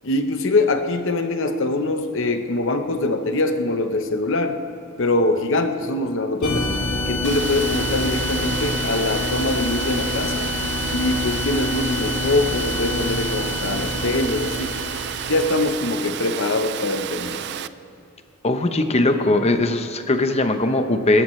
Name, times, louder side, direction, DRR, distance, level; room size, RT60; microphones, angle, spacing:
voice 1, 0.0-4.6 5.0-6.7 7.1-10.5 10.9-14.7 15.3-17.5, left 2 dB, 65° left, 7 dB, 0.9 m, -23 dB
sound 1, 6.4-15.8, left 2 dB, 50° left, 2.4 m, -26 dB
Water, 7.2-17.7, right 10 dB, 55° right, 0.4 m, -31 dB
voice 2, 18.4-21.2, left 2 dB, 30° left, 7 dB, 0.8 m, -20 dB
25.5 x 14.0 x 3.2 m, 2.6 s
head